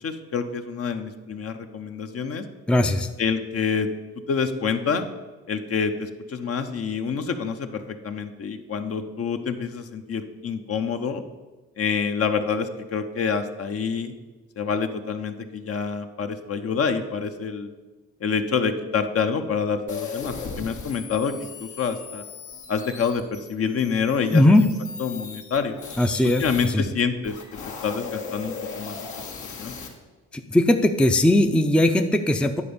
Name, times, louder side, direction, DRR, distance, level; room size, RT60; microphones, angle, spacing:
voice 1, 0.0-2.4 3.2-3.9 4.3-5.1 5.5-11.2 11.8-14.1 14.6-17.7 18.2-22.2 22.7-24.7 25.0-25.8 26.2-27.3 27.8-29.0 29.6-29.7, left 6 dB, 50° left, 7 dB, 0.9 m, -27 dB
voice 2, 2.7-3.1 24.3-24.6 26.0-26.9 30.3-32.6, left 1 dB, 5° left, 6 dB, 0.5 m, -19 dB
sound 1, 19.9-26.7 27.2-29.9, left 5 dB, 75° left, 1.8 m, -37 dB
10.0 x 4.3 x 7.0 m, 1.2 s
cardioid pair, 90°, 30 cm